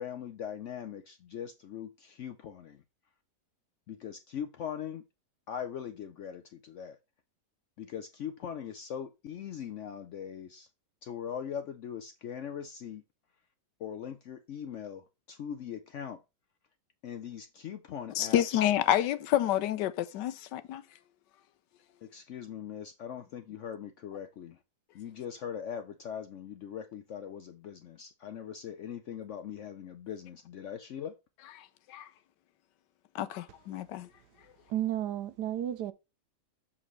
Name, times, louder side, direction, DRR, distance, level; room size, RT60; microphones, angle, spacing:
voice 1, 0.0-2.8 3.9-5.0 5.5-7.0 7.8-10.7 11.0-13.0 13.8-16.2 17.0-18.4 22.0-24.6 24.9-31.2, left 8 dB, 70° left, 0.7 m, -41 dB
voice 2, 18.2-20.8 31.9-32.1 33.1-34.1, left 12 dB, 85° left, 1.3 m, -28 dB
voice 3, 34.7-35.9, right 11 dB, 80° right, 1.2 m, -32 dB
7.1 x 4.8 x 3.1 m
omnidirectional pair, 1.8 m